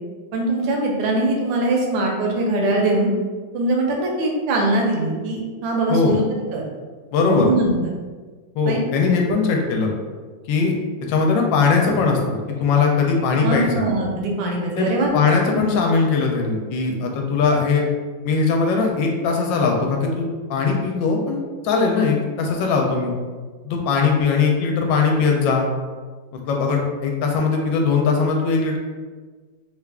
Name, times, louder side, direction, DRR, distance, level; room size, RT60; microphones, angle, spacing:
voice 1, 0.3-3.1 3.5-6.2 6.5-6.6 7.3-7.8 8.6-8.8 13.4-15.1 15.5-15.7, right 2 dB, 80° right, 0 dB, 1.4 m, -22 dB
voice 2, 7.1-7.5 8.5-9.9 10.5-10.7 11.1-13.9 14.8-14.9 15.1-17.8 18.2-23.1 23.6-25.7 26.3-28.8, left 4 dB, 80° left, 1 dB, 1.3 m, -20 dB
3.4 x 2.4 x 3.4 m, 1.4 s
omnidirectional pair, 2.0 m